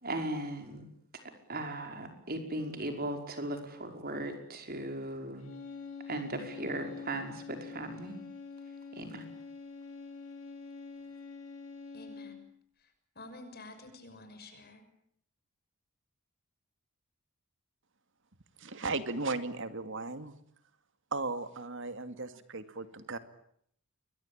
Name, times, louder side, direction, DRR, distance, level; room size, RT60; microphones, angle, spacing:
voice 1, 0.0-0.9 1.5-5.5 6.1-8.2 8.9-9.2, right 1 dB, 45° right, 6 dB, 5.4 m, -37 dB
sound 1, 5.4-12.5, left 5 dB, 80° left, 7.8 m, -46 dB
voice 2, 11.9-12.4 12.8-14.8, left 2 dB, 45° left, 8 dB, 6.4 m, -50 dB
voice 3, 18.6-20.3 21.1-23.2, right 3 dB, 60° right, 10 dB, 2.4 m, -36 dB
28.5 x 23.0 x 9.0 m, 0.68 s
head